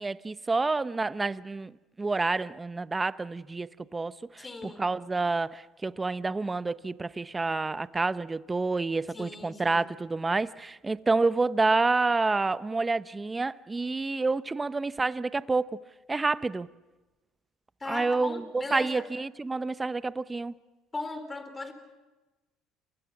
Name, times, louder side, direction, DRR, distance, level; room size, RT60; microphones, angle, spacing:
voice 1, 0.0-1.7 2.0-4.4 4.8-15.7 16.1-16.7 17.9-20.5, right 3 dB, 20° right, 0.8 m, -28 dB
voice 2, 4.4-4.9 9.1-9.9 17.8-19.1 20.9-21.7, left 3 dB, 20° left, 3.9 m, -38 dB
29.0 x 24.5 x 6.0 m
supercardioid pair, 90°, 0 cm